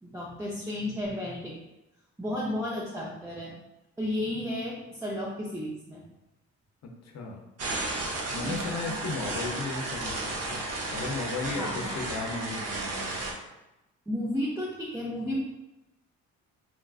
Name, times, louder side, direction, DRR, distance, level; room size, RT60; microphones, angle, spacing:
voice 1, 0.0-1.6 2.2-3.5 4.0-6.0 8.4-9.0 11.5-12.0 14.1-15.4, left 1 dB, 10° right, -5 dB, 0.5 m, -33 dB
voice 2, 6.8-7.4 8.3-10.6 10.9-13.2, left 3 dB, 60° left, 2 dB, 0.7 m, -35 dB
sound 1, 7.6-13.3, right 2 dB, 55° right, 0.8 m, -33 dB
4.0 x 2.4 x 2.3 m, 0.95 s
cardioid pair, 90°, 30 cm